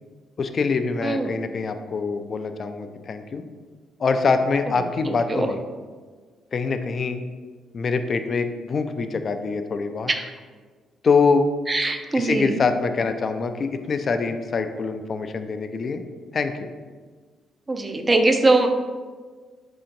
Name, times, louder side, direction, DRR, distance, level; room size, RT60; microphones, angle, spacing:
voice 1, 0.4-3.4 4.0-5.6 6.5-7.2 7.7-10.1 11.0-11.5 12.1-16.0 16.3-16.7, left 4 dB, 45° left, 8 dB, 0.3 m, -24 dB
voice 2, 1.0-1.4 5.0-5.5 10.1-10.3 11.7-12.6 17.7-18.7, right 2 dB, 25° right, 6 dB, 0.4 m, -22 dB
4.2 x 2.8 x 3.8 m, 1.5 s
cardioid pair, 90°, 0 cm